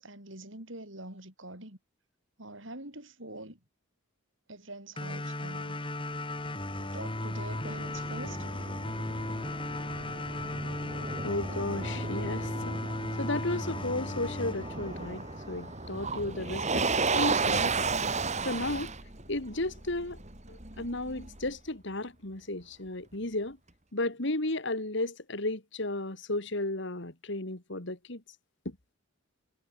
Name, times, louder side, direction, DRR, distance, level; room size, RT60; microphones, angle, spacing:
voice 1, 0.0-1.8 2.4-3.6 4.5-5.9 6.9-8.5, right 2 dB, 60° right, 7.3 m, -44 dB
sound 1, 5.0-15.9, left 1 dB, 25° left, 3.3 m, -36 dB
Motor vehicle (road), 6.5-21.5, right 4 dB, 35° right, 4.2 m, -34 dB
voice 2, 11.2-12.8 13.2-17.9 18.4-18.9 19.3-20.2 20.5-23.6 23.9-28.2 28.6-28.8, left 2 dB, 60° left, 2.6 m, -34 dB
head